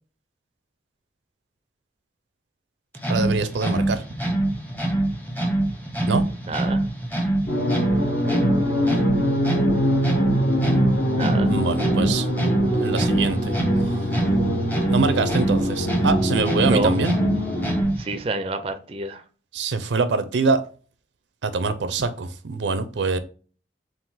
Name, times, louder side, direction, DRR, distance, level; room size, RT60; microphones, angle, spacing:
sound 1, 2.9-18.2, right 1 dB, 10° left, 0.7 m, -25 dB
voice 1, 3.1-4.0 6.1-6.2 11.5-12.3 12.8-13.5 14.9-17.1 19.5-20.6 21.4-23.2, right 4 dB, 90° right, 0.5 m, -24 dB
voice 2, 6.5-6.8 11.2-11.5 16.6-17.0 18.0-19.2, right 3 dB, 30° right, 0.4 m, -27 dB
sound 2, 7.5-17.8, equal, 60° left, 1.0 m, -24 dB
3.8 x 2.5 x 4.0 m
head